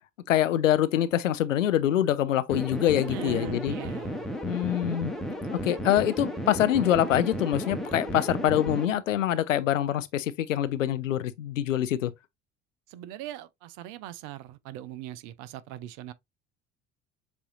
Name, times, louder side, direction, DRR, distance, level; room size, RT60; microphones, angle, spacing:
voice 1, 0.3-3.7 4.4-5.1 5.5-12.1, left 11 dB, 85° left, 0.5 m, -25 dB
sound 1, 2.5-8.8, equal, ahead, 1.2 m, -34 dB
voice 2, 3.0-4.3 12.9-16.1, right 13 dB, 55° right, 0.6 m, -40 dB
sound 2, 3.7-9.0, right 12 dB, 90° right, 0.7 m, -49 dB
6.9 x 2.7 x 2.6 m
figure-of-eight pair, 65°, 38 cm